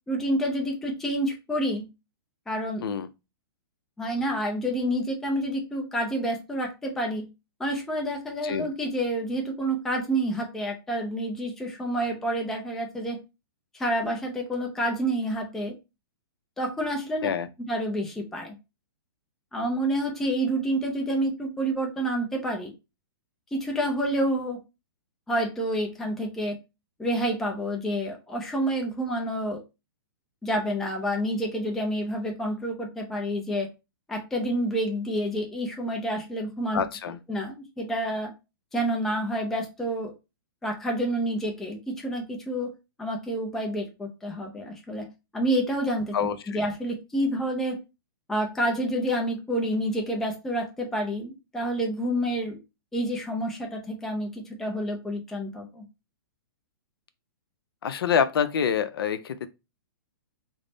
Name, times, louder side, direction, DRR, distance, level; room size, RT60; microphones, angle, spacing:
voice 1, 0.1-1.9 2.5-2.9 4.0-7.3 7.6-13.2 13.8-15.7 16.6-17.3 17.7-18.5 19.5-22.7 23.5-24.6 25.3-26.6 27.0-29.6 30.4-33.7 34.1-36.8 37.3-38.3 38.7-40.1 40.6-42.7 43.0-45.1 45.3-47.8 48.3-52.6 52.9-55.8, right 1 dB, 5° left, 0.3 m, -28 dB
voice 2, 36.7-37.2 46.1-46.6 57.8-59.5, left 7 dB, 75° left, 0.5 m, -26 dB
3.4 x 2.0 x 3.8 m
hypercardioid pair, 165°, 13 cm